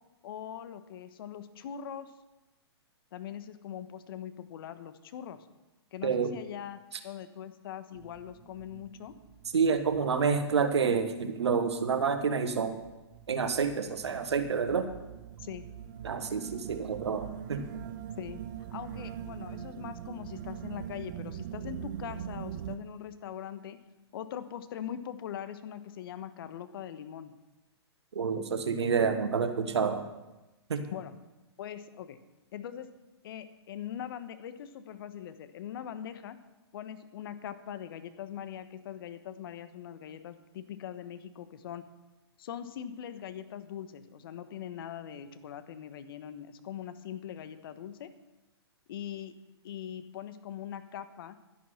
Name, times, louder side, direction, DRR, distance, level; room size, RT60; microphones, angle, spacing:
voice 1, 0.2-2.1 3.1-5.4 5.9-9.1 15.4-15.6 18.2-18.4 18.7-23.8 24.1-27.3 30.9-31.1 31.6-32.2 32.5-32.9 33.2-36.4 36.7-41.8 42.4-48.1 48.9-49.3 49.6-51.4, left 9 dB, 55° left, 11 dB, 1.3 m, -41 dB
sound 1, 7.9-22.8, right 10 dB, 45° right, 0.7 m, -43 dB
voice 2, 9.5-12.8 13.3-14.9 16.0-17.8 28.1-30.0 30.7-30.8, right 5 dB, 75° right, 9 dB, 1.5 m, -28 dB
12.0 x 10.5 x 5.8 m, 1.0 s
hypercardioid pair, 125°, 14 cm